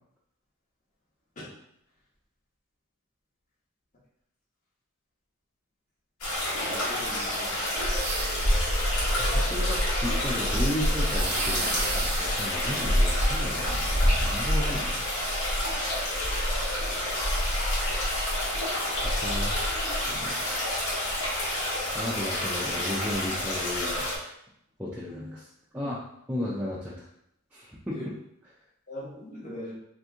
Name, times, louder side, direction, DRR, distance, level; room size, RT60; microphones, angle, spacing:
sound 1, 6.2-24.2, left 1 dB, 75° left, 1.2 m, -27 dB
voice 1, 6.5-7.7 27.9-28.1 28.9-29.7, left 1 dB, 35° left, -6 dB, 1.0 m, -40 dB
sound 2, 8.0-8.6 11.0-12.4, right 4 dB, 85° right, 0.6 m, -33 dB
voice 2, 9.3-15.1 19.2-19.6 19.9-20.4 21.9-24.1 24.8-25.5 25.7-26.0 26.3-27.1 27.5-28.0, left 1 dB, 5° right, -7 dB, 0.3 m, -34 dB
2.8 x 2.5 x 3.5 m, 0.77 s
head